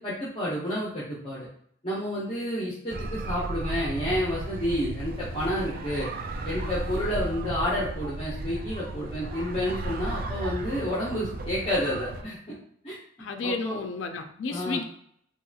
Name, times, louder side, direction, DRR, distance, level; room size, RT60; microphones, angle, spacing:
voice 1, 0.0-1.5 1.8-6.1 6.4-12.5 12.8-13.0 13.4-13.8 14.5-14.8, equal, 30° left, -8 dB, 0.7 m, -30 dB
sound 1, 2.9-12.2, right 2 dB, 45° right, 0.3 m, -34 dB
voice 2, 13.2-14.8, left 3 dB, 70° left, 6 dB, 0.4 m, -31 dB
2.9 x 2.9 x 2.3 m, 0.67 s
head